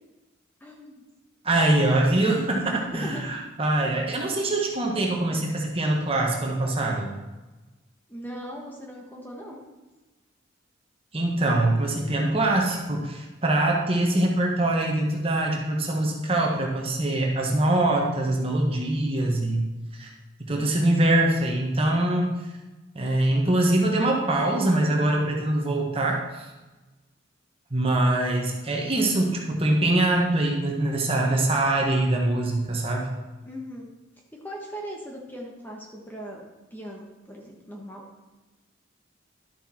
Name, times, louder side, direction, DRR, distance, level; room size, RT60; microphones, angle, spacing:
voice 1, 0.6-1.0 2.8-3.4 8.1-9.6 33.4-33.9 34.3-38.0, equal, 10° left, -1 dB, 1.3 m, -39 dB
voice 2, 1.4-7.1 11.1-19.6 19.9-20.1 20.4-22.3 22.9-26.5 27.7-33.1, right 1 dB, 30° right, -1 dB, 1.5 m, -23 dB
12.0 x 7.0 x 4.4 m, 1.1 s
head